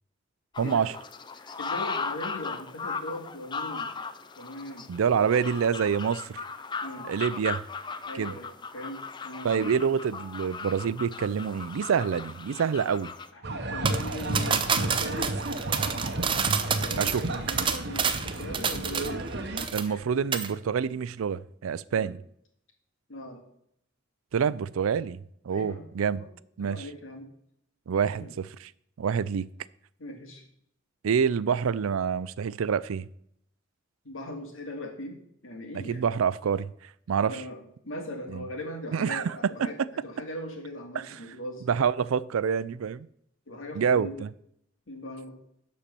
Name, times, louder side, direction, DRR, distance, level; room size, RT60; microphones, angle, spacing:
sound 1, 0.5-13.3, left 5 dB, 20° left, 0.4 m, -37 dB
voice 1, 0.6-0.9 4.9-6.4 7.1-7.6 8.1-8.3 9.4-13.1 17.0-17.2 19.7-22.2 24.3-25.2 25.4-26.2 26.6-26.9 27.9-28.7 29.0-29.5 31.0-33.1 35.9-36.7 37.1-37.4 38.3-38.4 38.9-39.7 41.0-41.1 41.7-43.1 43.7-44.3, right 7 dB, 90° right, 0.4 m, -27 dB
voice 2, 1.4-3.9 4.4-5.3 6.8-7.1 8.0-8.5 8.7-9.8 13.3-15.3 16.8-17.1 17.9-19.6 19.9-20.0 21.9-22.1 23.1-23.4 25.5-25.9 26.1-26.3 26.6-27.3 28.1-28.3 30.0-30.4 34.0-36.0 37.2-39.8 40.0-41.6 43.5-44.2 44.9-45.4, left 1 dB, 75° left, 2.2 m, -40 dB
sound 2, 13.4-19.7, right 2 dB, 55° right, 0.9 m, -32 dB
sound 3, 13.9-19.3 19.6-20.0 20.3-20.5, right 6 dB, 25° right, 0.6 m, -28 dB
11.5 x 4.3 x 6.7 m
head